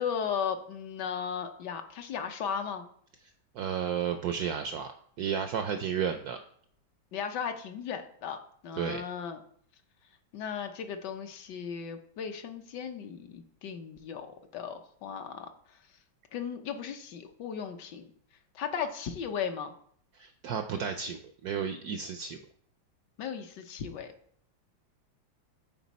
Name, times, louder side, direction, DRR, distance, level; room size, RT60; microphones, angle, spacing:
voice 1, 0.0-2.8 7.1-8.4 8.6-9.4 10.3-15.5 16.3-18.1 18.5-19.7 23.2-24.1, left 7 dB, 70° left, 6 dB, 1.2 m, -36 dB
voice 2, 3.5-4.9 5.2-6.4 8.8-9.0 20.1-22.4, right 7 dB, 75° right, 7 dB, 0.9 m, -32 dB
9.3 x 4.5 x 4.1 m, 0.62 s
omnidirectional pair, 2.1 m